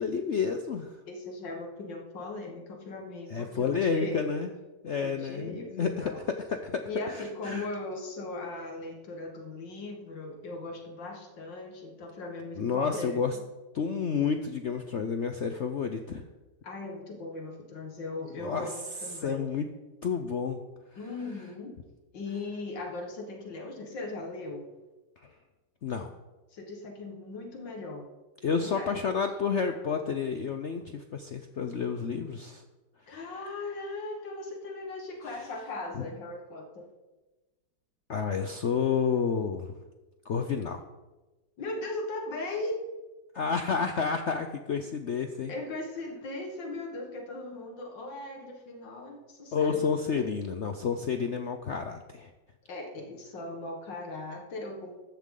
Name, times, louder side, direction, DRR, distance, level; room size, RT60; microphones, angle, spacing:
voice 1, 0.0-0.9 3.3-4.5 4.8-7.7 12.6-13.4 13.7-16.2 18.4-18.7 19.1-19.7 20.0-20.6 25.8-26.1 28.4-32.6 33.1-33.2 36.0-36.1 38.1-39.7 40.3-40.8 43.3-45.5 49.5-52.3, left 6 dB, 60° left, 6 dB, 0.7 m, -30 dB
voice 2, 1.1-4.3 4.9-6.2 6.8-13.4 16.6-19.4 21.0-21.8 22.1-24.6 26.5-28.1 28.6-28.9 33.1-36.9 41.6-42.8 45.5-50.3 52.7-55.0, left 2 dB, 80° left, 2 dB, 2.3 m, -38 dB
14.5 x 11.0 x 3.9 m, 1.1 s
omnidirectional pair, 2.0 m